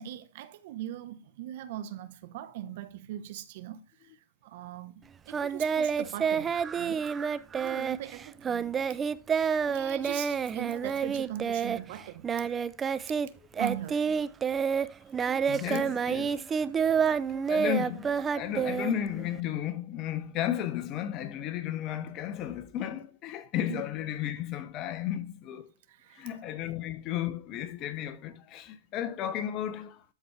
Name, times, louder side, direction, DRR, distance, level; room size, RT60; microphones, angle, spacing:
voice 1, 0.0-4.2 4.4-7.0 7.5-8.8 9.7-12.3 13.6-14.2 23.7-23.8 25.9-26.3, right 12 dB, 55° right, 1.0 m, -40 dB
Singing, 5.3-13.3 13.5-19.4, right 6 dB, 20° right, 0.4 m, -29 dB
voice 2, 15.5-16.5 17.3-25.7 26.1-30.0, left 11 dB, 40° left, 0.9 m, -34 dB
13.0 x 4.4 x 3.3 m
hypercardioid pair, 115°, 0 cm